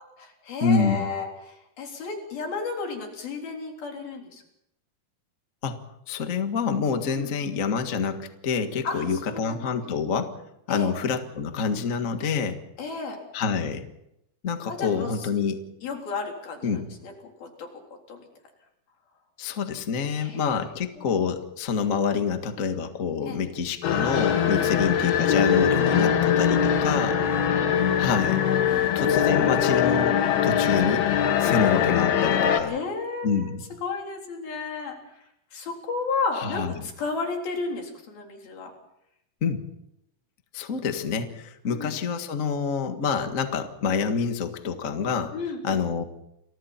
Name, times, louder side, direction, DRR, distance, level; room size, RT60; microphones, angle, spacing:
voice 1, 0.0-4.4 7.1-7.3 8.8-9.7 10.7-10.9 12.8-13.2 14.7-15.1 15.8-17.1 17.4-17.8 18.1-18.2 20.1-20.4 23.3-23.4 24.5-24.7 26.5-28.4 28.7-29.2 31.4-32.1 32.7-35.0 35.5-38.7 41.7-42.0 45.3-45.8, left 4 dB, 75° left, 1 dB, 5.5 m, -33 dB
voice 2, 0.6-1.1 5.6-5.8 6.1-10.4 10.7-12.6 13.3-13.9 14.4-15.6 16.6-16.9 19.4-27.2 28.0-28.4 28.9-31.1 31.4-32.8 33.2-33.6 36.3-36.7 39.4-39.7 40.5-45.3 45.6-46.0, left 5 dB, 50° left, 6 dB, 0.9 m, -27 dB
sound 1, 23.8-32.6, left 8 dB, 90° left, 3.5 m, -22 dB
30.0 x 23.5 x 4.4 m, 0.80 s
omnidirectional pair, 4.3 m